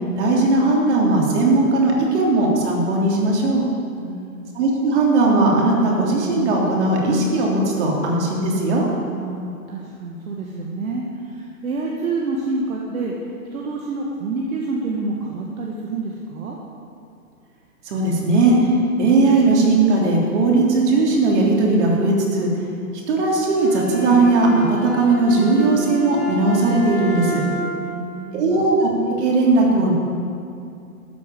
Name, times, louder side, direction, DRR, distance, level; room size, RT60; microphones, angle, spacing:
voice 1, 0.2-3.6 4.5-8.8 17.8-18.7 19.0-22.5 23.1-27.4 28.3-28.9 29.2-29.9, right 2 dB, 50° right, -2 dB, 3.2 m, -18 dB
voice 2, 4.0-4.5 9.1-13.1 13.5-16.6 27.9-28.7, right 3 dB, 65° right, -2 dB, 1.7 m, -28 dB
Bowed string instrument, 23.6-27.9, right 1 dB, ahead, 1.7 m, -30 dB
13.0 x 6.7 x 7.5 m, 2.6 s
hypercardioid pair, 140°, 45 cm